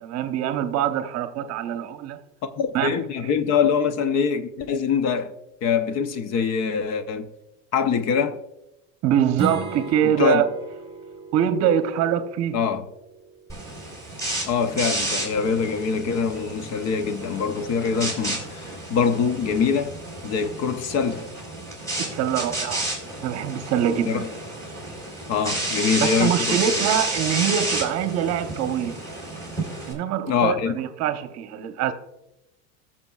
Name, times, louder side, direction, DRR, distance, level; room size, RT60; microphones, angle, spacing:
voice 1, 0.0-2.2 2.7-3.0 9.0-10.5 11.3-12.6 22.0-22.9 23.2-24.3 26.0-29.0 29.9-31.9, right 9 dB, 45° right, 0.9 m, -24 dB
voice 2, 2.6-5.3 5.6-7.3 7.7-8.4 10.0-10.5 12.5-12.8 14.5-19.9 20.2-21.3 24.1-24.3 25.3-26.6 30.3-30.7, left 6 dB, 45° left, 0.8 m, -24 dB
Strum, 9.3-14.5, right 4 dB, 15° right, 3.2 m, -36 dB
sound 1, 13.5-29.9, right 2 dB, 10° left, 3.9 m, -31 dB
19.0 x 6.9 x 2.4 m
supercardioid pair, 125°, 36 cm